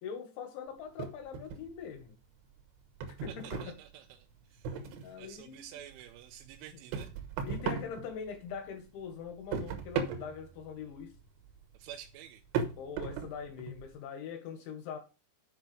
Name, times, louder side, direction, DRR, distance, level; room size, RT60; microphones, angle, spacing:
voice 1, 0.0-2.1 3.1-3.7 5.0-5.6 7.5-11.1 12.8-15.0, left 7 dB, 75° left, 3.8 m, -42 dB
sound 1, 1.0-2.0 2.4-5.3 5.7-8.7 9.0-13.9, right 6 dB, 70° right, 3.1 m, -38 dB
voice 2, 3.3-4.2 4.5-4.8 5.2-7.1 11.7-12.4, right 10 dB, 90° right, 3.2 m, -49 dB
8.1 x 5.6 x 6.1 m
omnidirectional pair, 5.6 m